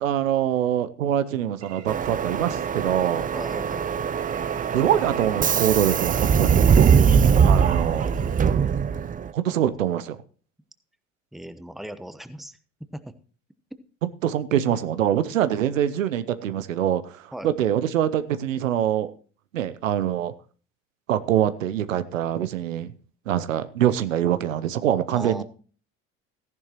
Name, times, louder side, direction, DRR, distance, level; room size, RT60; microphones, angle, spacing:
voice 1, 0.0-3.3 4.7-6.6 7.4-8.1 9.3-10.2 14.2-19.1 19.5-20.3 21.1-22.9 23.3-25.4, right 10 dB, 85° right, 12 dB, 0.7 m, -24 dB
sound 1, 1.6-8.5, right 8 dB, 40° right, 1.3 m, -40 dB
Subway metro underground, 1.9-9.3, right 7 dB, 20° right, 0.5 m, -21 dB
voice 2, 3.3-3.9 11.3-12.6 12.9-13.2 17.3-17.5 25.1-25.4, right 1 dB, ahead, 11 dB, 1.0 m, -39 dB
14.5 x 10.5 x 3.0 m, 0.40 s
hypercardioid pair, 65°, 38 cm